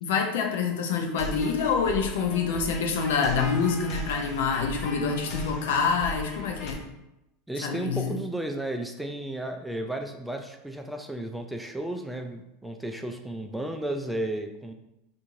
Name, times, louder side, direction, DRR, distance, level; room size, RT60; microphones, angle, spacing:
voice 1, 0.0-6.8 7.6-8.2, left 5 dB, 80° left, 3 dB, 0.6 m, -26 dB
sound 1, 1.1-6.7, equal, 45° left, 0.7 m, -38 dB
voice 2, 7.5-14.7, right 1 dB, 5° right, 4 dB, 0.3 m, -33 dB
2.9 x 2.7 x 3.6 m, 0.87 s
supercardioid pair, 115°, 0 cm